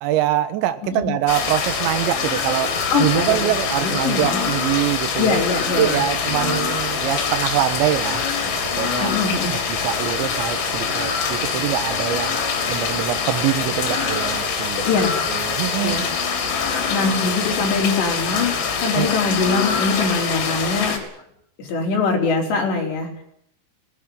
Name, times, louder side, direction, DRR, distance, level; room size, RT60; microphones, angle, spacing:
voice 1, 0.0-5.4 5.8-8.2 8.7-9.2 9.5-12.4 12.7-14.9 15.3-16.1 19.0-19.1, right 13 dB, 75° right, 9 dB, 3.4 m, -24 dB
sound 1, 1.3-21.0, left 5 dB, 80° left, 6.1 m, -24 dB
voice 2, 2.9-3.4 3.8-4.4 5.2-6.0 6.4-6.6 9.0-9.5 14.8-15.1 15.8-16.0 16.9-20.9 21.6-23.1, left 4 dB, 60° left, -1 dB, 6.8 m, -22 dB
19.0 x 19.0 x 9.7 m, 0.73 s
omnidirectional pair, 5.6 m